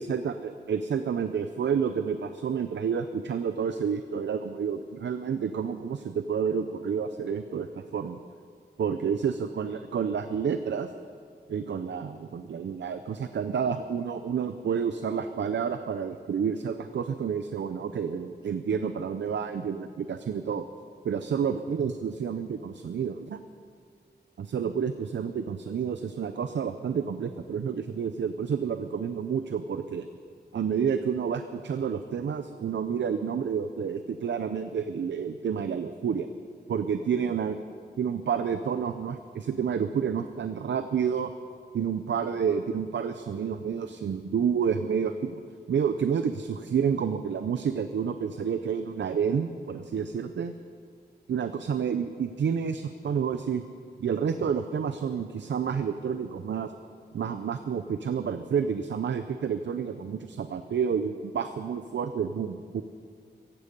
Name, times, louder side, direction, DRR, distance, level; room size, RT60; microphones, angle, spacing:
voice 1, 0.0-8.2 8.8-10.9 11.5-20.6 21.0-23.4 24.4-30.1 30.5-36.3 36.7-37.6 38.0-41.3 41.7-45.4 45.7-50.5 51.3-53.6 54.0-56.7 57.1-62.8, right 7 dB, 85° right, 9 dB, 0.6 m, -29 dB
16.5 x 15.0 x 5.3 m, 2.2 s
wide cardioid pair, 70°, 18 cm